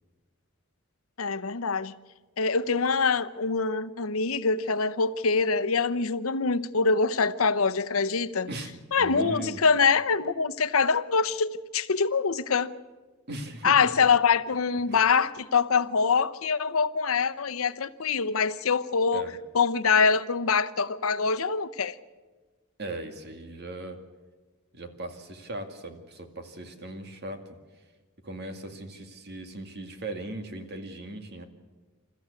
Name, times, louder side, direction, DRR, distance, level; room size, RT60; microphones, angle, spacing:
voice 1, 1.2-1.9 2.4-8.5 8.9-12.7 13.6-19.3 19.5-22.0, left 5 dB, 75° left, 0.8 m, -24 dB
voice 2, 8.5-9.6 13.3-13.9 14.9-15.0 19.1-19.3 22.8-24.0 24.7-27.4 28.2-31.4, right 1 dB, 50° right, 2.1 m, -38 dB
28.0 x 14.0 x 8.3 m
head